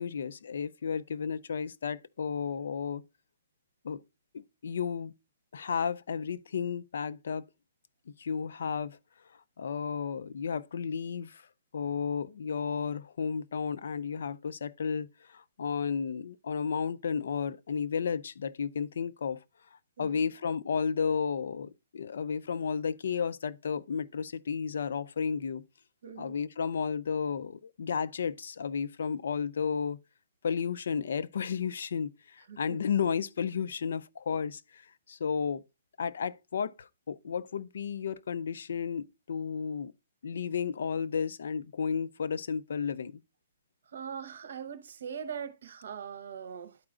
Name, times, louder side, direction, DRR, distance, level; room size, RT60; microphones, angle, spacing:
voice 1, 0.0-3.0 3.8-4.0 4.3-5.1 5.5-7.5 8.2-9.0 9.6-11.5 11.7-19.4 19.7-25.6 26.2-30.0 30.4-35.6 36.0-39.9 40.2-43.2, left 6 dB, 65° left, 0.4 m, -33 dB
voice 2, 20.0-20.3 26.0-26.4 32.5-32.8 43.9-46.8, right 7 dB, 60° right, 0.9 m, -41 dB
12.0 x 4.8 x 2.4 m
hypercardioid pair, 170°, 0 cm